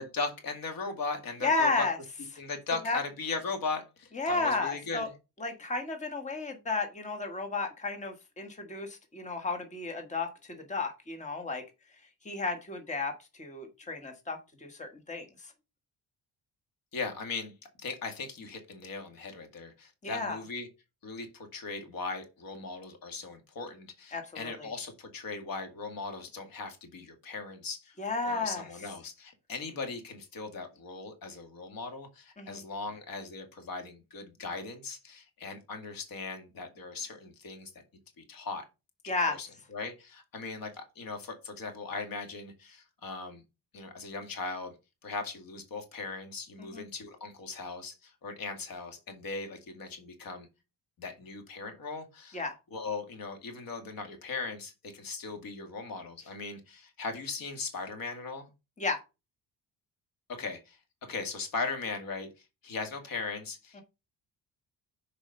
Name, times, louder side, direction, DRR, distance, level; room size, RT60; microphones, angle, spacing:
voice 1, 0.1-1.9 2.4-5.1 16.9-17.5 17.8-20.7 21.0-27.9 28.2-37.7 38.2-38.6 39.0-43.4 43.7-44.7 45.0-50.5 51.0-52.4 52.7-58.5 60.3-60.8 61.1-62.3 62.6-63.8, left 4 dB, 60° left, 5 dB, 2.2 m, -38 dB
voice 2, 1.4-2.0 2.8-3.0 4.1-5.1 5.4-11.6 12.2-15.5 20.0-20.4 24.1-24.7 28.0-28.7 32.4-32.6 39.1-39.4 46.6-46.8 52.3-52.5 58.8-59.0 63.7-63.8, left 3 dB, 20° left, 5 dB, 1.4 m, -33 dB
7.0 x 4.9 x 5.4 m, 0.27 s
cardioid pair, 135°, 38 cm